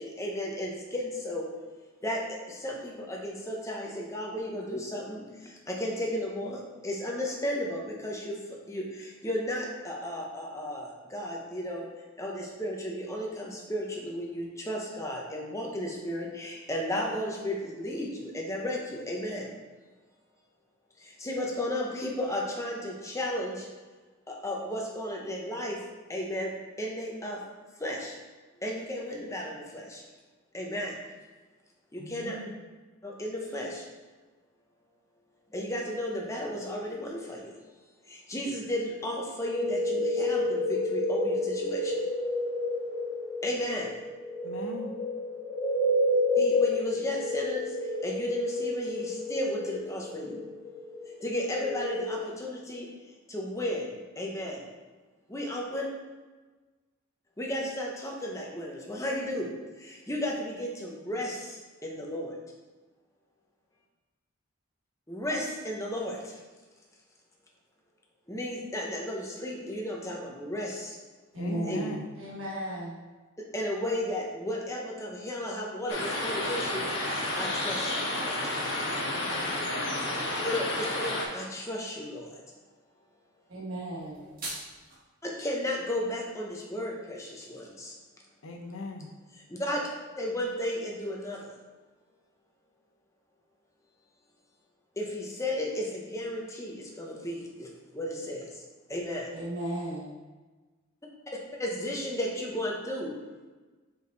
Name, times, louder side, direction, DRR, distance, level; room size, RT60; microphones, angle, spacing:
voice 1, 0.0-1.4 2.0-2.2 2.5-5.2 5.7-8.3 8.7-11.8 12.2-19.5 21.2-23.6 24.3-25.8 26.1-26.5 26.8-27.4 27.8-28.1 28.6-30.0 30.5-30.9 31.9-32.4 33.0-33.8 35.5-37.5 38.3-42.0 43.4-43.9 46.4-47.6 48.0-50.4 51.2-52.9 53.3-53.8 54.2-54.6 55.3-55.9 57.4-59.5 59.8-61.5 61.8-62.3 65.1-66.2 68.3-70.9 71.7-71.8 73.5-76.8 77.4-78.4 80.4-82.3 85.2-87.9 89.6-89.8 90.2-91.4 95.0-97.7 97.9-98.4 98.9-99.3 101.6-103.1, left 1 dB, 15° left, -1 dB, 0.9 m, -34 dB
voice 2, 32.0-32.6 44.4-45.0 71.4-72.1 88.4-89.1, left 1 dB, 85° left, 1 dB, 0.9 m, -39 dB
sound 1, 39.5-52.1, left 1 dB, 35° left, 1.6 m, -30 dB
voice 3, 71.3-73.0 83.5-84.3 99.3-100.1, right 1 dB, 75° right, -5 dB, 1.4 m, -35 dB
sound 2, 75.9-81.2, left 1 dB, 60° left, 1.3 m, -31 dB
sound 3, 83.9-85.0, right 2 dB, 45° right, 1.6 m, -40 dB
5.2 x 4.9 x 4.0 m, 1.3 s
head